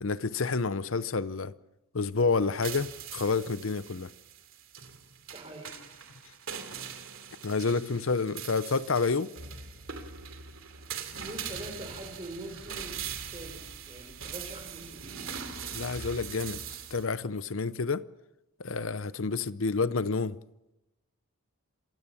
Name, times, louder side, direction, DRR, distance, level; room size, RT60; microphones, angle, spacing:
voice 1, 0.0-1.5 1.9-4.1 7.4-9.3 15.7-16.6 16.9-18.0 18.6-20.4, left 4 dB, 65° left, 0.7 m, -29 dB
sound 1, 2.3-17.0, right 7 dB, 65° right, 2.9 m, -42 dB
voice 2, 5.3-5.7 11.1-12.9 13.3-15.2, right 1 dB, 25° right, 3.8 m, -43 dB
27.0 x 16.5 x 7.1 m
head